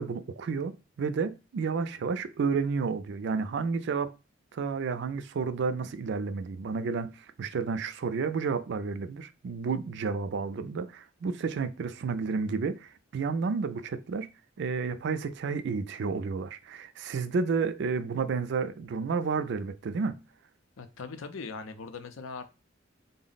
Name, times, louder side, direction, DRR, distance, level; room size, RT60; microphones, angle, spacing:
voice 1, 0.0-4.1 4.5-14.3 14.6-20.2, right 5 dB, 60° right, 0.4 m, -31 dB
voice 2, 20.8-22.4, left 4 dB, 85° left, 0.5 m, -40 dB
3.8 x 2.0 x 3.9 m
head